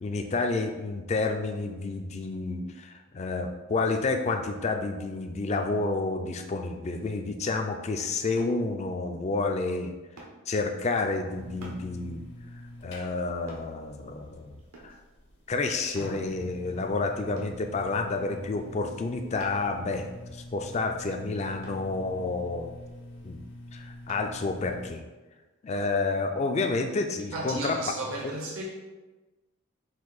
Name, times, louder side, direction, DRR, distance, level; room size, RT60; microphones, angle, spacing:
voice 1, 0.0-9.9 10.5-12.2 12.8-15.0 15.5-22.7 23.2-23.4 23.7-25.0 25.6-27.8 28.2-28.3, left 3 dB, 30° left, 0.3 m, -30 dB
sound 1, 8.4-8.6 10.2-10.4 11.6-11.9 13.5-13.7 14.7-15.0 16.0-16.2 17.4-17.6 19.4-19.7 21.6-21.9 24.1-24.3 24.9-25.0, right 2 dB, 90° right, 1.0 m, -46 dB
sound 2, 11.3-24.9, left 1 dB, 55° left, 0.7 m, -46 dB
voice 2, 27.3-28.6, right 2 dB, 65° right, 0.7 m, -34 dB
4.5 x 2.6 x 3.9 m
head